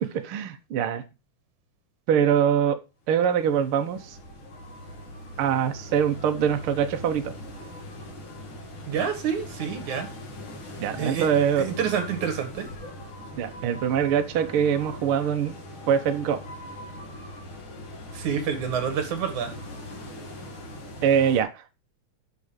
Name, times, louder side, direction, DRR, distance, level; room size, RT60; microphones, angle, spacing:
voice 1, 0.2-1.0 2.1-2.8 3.1-4.2 5.4-7.3 10.8-11.7 13.4-15.6 15.9-16.4 21.0-21.6, right 8 dB, 60° right, 7 dB, 1.6 m, -23 dB
sound 1, 3.1-21.4, left 1 dB, 45° left, 2.8 m, -41 dB
voice 2, 8.9-10.1 11.0-12.7 18.1-19.5, right 7 dB, 75° right, 7 dB, 3.3 m, -28 dB
8.3 x 6.2 x 5.1 m, 0.27 s
omnidirectional pair, 3.4 m